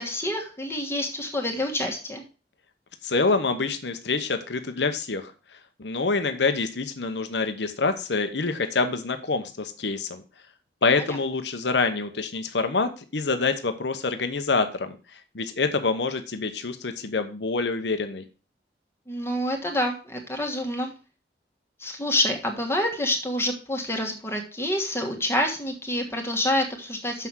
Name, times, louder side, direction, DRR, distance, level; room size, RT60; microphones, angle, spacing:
voice 1, 0.0-2.2 11.0-11.2 19.1-20.9 21.8-27.3, left 1 dB, 15° left, 2 dB, 1.5 m, -27 dB
voice 2, 3.0-5.3 5.8-10.2 10.8-18.2, left 4 dB, 80° left, 8 dB, 0.9 m, -26 dB
6.9 x 5.9 x 6.0 m, 0.34 s
head